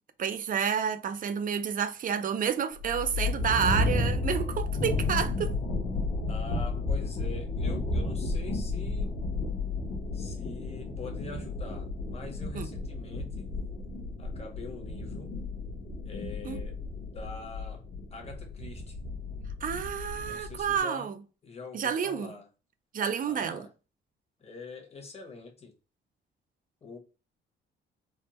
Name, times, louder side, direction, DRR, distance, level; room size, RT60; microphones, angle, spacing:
voice 1, 0.2-5.6 12.5-12.7 16.4-16.6 19.6-21.1 21.7-22.3 22.9-23.7, right 7 dB, 45° right, 0.4 m, -30 dB
sound 1, 2.7-20.8, left 3 dB, 55° left, 1.0 m, -32 dB
voice 2, 6.3-9.2 10.1-13.5 14.2-15.3 16.0-16.8 17.1-19.0 20.3-21.1 21.4-22.5 23.2-23.7 24.4-25.7 26.8-27.0, left 3 dB, 30° left, 1.0 m, -44 dB
3.5 x 2.0 x 2.9 m
cardioid pair, 90°, 20 cm